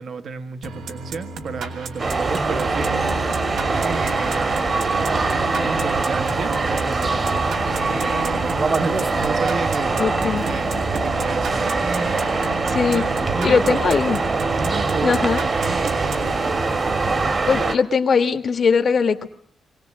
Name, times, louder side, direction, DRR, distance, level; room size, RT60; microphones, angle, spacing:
voice 1, 0.0-4.5 5.6-10.0 10.4-12.6 12.9-14.0 14.6-16.3, right 4 dB, 60° right, 8 dB, 1.4 m, -32 dB
sound 1, 0.6-16.9, right 3 dB, 85° right, 2.6 m, -34 dB
sound 2, 2.0-17.8, right 3 dB, 35° right, 1.6 m, -23 dB
voice 2, 10.0-10.4 12.7-13.0 13.4-14.2 15.0-15.4 17.5-19.3, left 5 dB, 45° left, 7 dB, 1.5 m, -20 dB
22.5 x 18.0 x 7.5 m, 0.64 s
cardioid pair, 110°, 0 cm